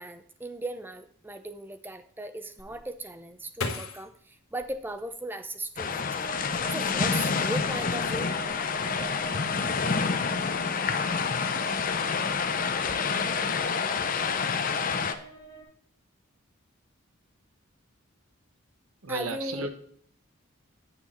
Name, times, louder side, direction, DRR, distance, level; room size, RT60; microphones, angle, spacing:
voice 1, 0.0-6.3 6.7-8.3 19.1-19.7, right 1 dB, 10° right, 9 dB, 0.5 m, -37 dB
sound 1, 2.6-5.7 6.2-6.9 7.3-7.7, left 3 dB, 85° left, 1.3 m, -39 dB
sound 2, 5.8-15.1, left 5 dB, 40° left, 0.6 m, -28 dB
sound 3, 6.2-15.6, right 2 dB, 25° left, 3.4 m, -44 dB
voice 2, 19.0-19.7, right 3 dB, 80° right, 8 dB, 1.1 m, -33 dB
9.4 x 6.1 x 4.3 m, 0.62 s
head